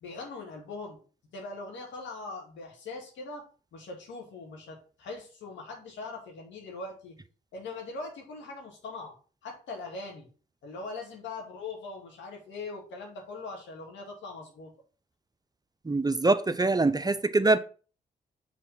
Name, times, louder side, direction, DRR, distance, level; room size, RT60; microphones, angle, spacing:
voice 1, 0.0-1.0 1.3-3.4 3.7-7.2 7.5-9.1 9.4-10.3 10.6-14.7, left 3 dB, 75° left, 2.3 m, -41 dB
voice 2, 15.9-17.6, right 3 dB, 20° right, 0.6 m, -24 dB
6.4 x 4.0 x 5.8 m
hypercardioid pair, 45°, 19 cm